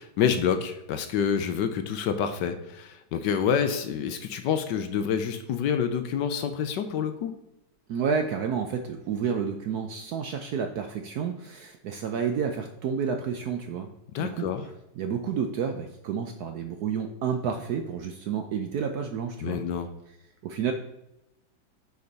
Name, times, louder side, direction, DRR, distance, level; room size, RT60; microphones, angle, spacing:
voice 1, 0.0-7.4 14.1-14.6 19.4-19.9, left 7 dB, 75° left, 8 dB, 1.1 m, -27 dB
voice 2, 7.9-13.9 14.2-19.6 20.4-20.7, right 6 dB, 70° right, 5 dB, 0.9 m, -30 dB
6.7 x 5.2 x 4.0 m, 0.91 s
omnidirectional pair, 2.1 m